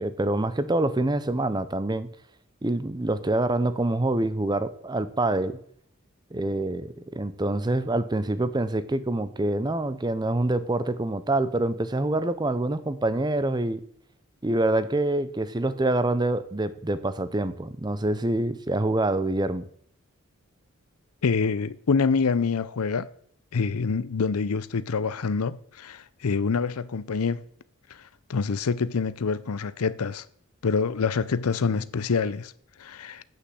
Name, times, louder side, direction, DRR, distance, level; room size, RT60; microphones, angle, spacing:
voice 1, 0.0-2.1 2.6-5.6 6.3-13.8 14.4-19.6, right 2 dB, 20° right, 0.6 m, -26 dB
voice 2, 21.2-23.1 23.5-27.4 28.3-30.2 30.6-32.5 32.8-33.2, left 5 dB, 85° left, 0.6 m, -26 dB
8.4 x 6.7 x 7.6 m
head